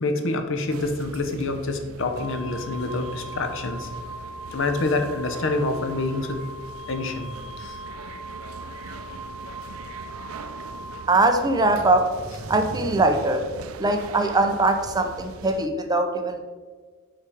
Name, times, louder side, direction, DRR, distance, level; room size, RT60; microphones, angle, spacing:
voice 1, 0.0-3.9 4.5-6.4 6.9-7.3 7.6-7.8, left 2 dB, 65° left, 7 dB, 0.7 m, -27 dB
sound 1, 0.7-15.7, right 5 dB, 75° right, 0.4 m, -41 dB
Wind instrument woodwind instrument, 2.1-11.0, equal, 40° left, 1.4 m, -40 dB
voice 2, 11.1-12.1 12.4-13.4 13.8-16.4, right 2 dB, 20° right, 6 dB, 0.5 m, -21 dB
6.2 x 4.9 x 4.5 m, 1.5 s
head